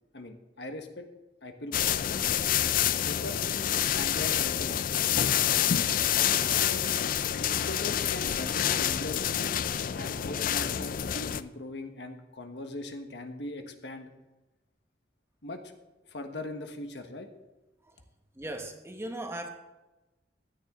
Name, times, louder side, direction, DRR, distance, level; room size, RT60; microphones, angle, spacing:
voice 1, 0.1-1.0 1.4-2.4 3.0-3.5 3.9-4.9 6.5-6.9 7.3-9.6 9.9-14.1 15.4-15.6 16.1-17.3, left 2 dB, 70° left, 6 dB, 1.3 m, -40 dB
sound 1, 1.7-11.4, left 10 dB, 50° left, 0.4 m, -27 dB
voice 2, 18.3-19.5, right 1 dB, 15° right, 4 dB, 1.3 m, -37 dB
15.5 x 10.5 x 3.7 m, 1.0 s
head